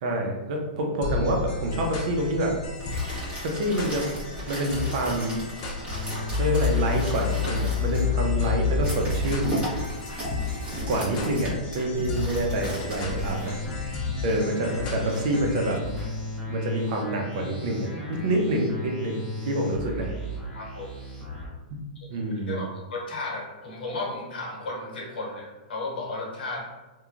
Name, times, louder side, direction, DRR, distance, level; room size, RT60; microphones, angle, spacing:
voice 1, 0.0-2.6 3.4-4.1 4.5-5.4 6.4-9.7 10.9-13.6 14.2-15.8 16.4-20.1 22.1-22.7, right 1 dB, 50° right, 1 dB, 0.6 m, -27 dB
sound 1, 1.0-15.8, left 3 dB, 40° left, 0.5 m, -35 dB
sound 2, 2.7-14.0, equal, 25° right, 1.2 m, -37 dB
sound 3, 5.9-11.1 11.3-21.5, left 4 dB, 5° right, 1.3 m, -31 dB
voice 2, 20.5-20.9 22.1-26.7, left 2 dB, 90° left, -2 dB, 0.9 m, -34 dB
2.8 x 2.2 x 2.4 m, 1.2 s
hypercardioid pair, 140°, 5 cm